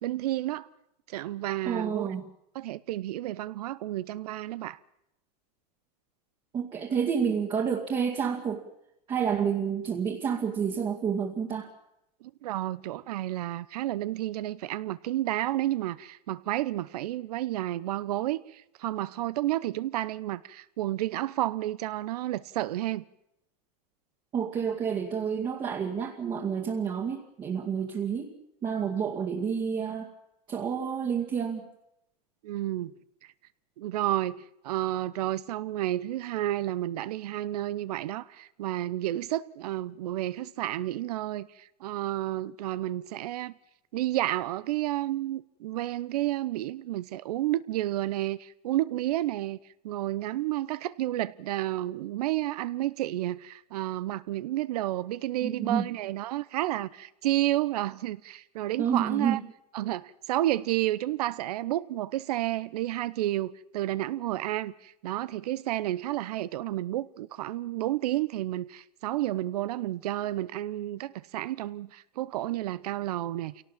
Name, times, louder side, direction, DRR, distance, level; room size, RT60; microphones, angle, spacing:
voice 1, 0.0-0.7 1.1-2.1 2.5-4.8 12.2-23.0 32.4-32.9 33.8-43.5 43.9-49.6 49.8-59.4 59.7-73.6, right 14 dB, 70° right, 0.9 m, -31 dB
voice 2, 1.7-2.3 6.5-8.7 9.1-11.7 24.3-28.3 28.6-30.1 30.5-31.7 55.4-55.9 58.8-59.4, right 7 dB, 25° right, 2.2 m, -29 dB
26.5 x 17.5 x 7.4 m
supercardioid pair, 155°, 20 cm